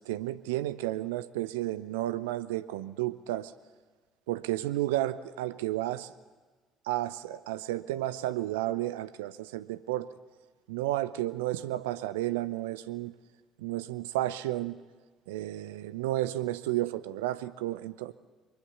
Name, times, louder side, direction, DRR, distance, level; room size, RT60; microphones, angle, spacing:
voice 1, 0.0-3.5 4.3-6.1 6.9-10.1 10.7-13.1 13.6-14.8 15.3-18.1, right 15 dB, 75° right, 14 dB, 0.7 m, -32 dB
24.0 x 23.0 x 7.2 m, 1.4 s
figure-of-eight pair, 50°, 0 cm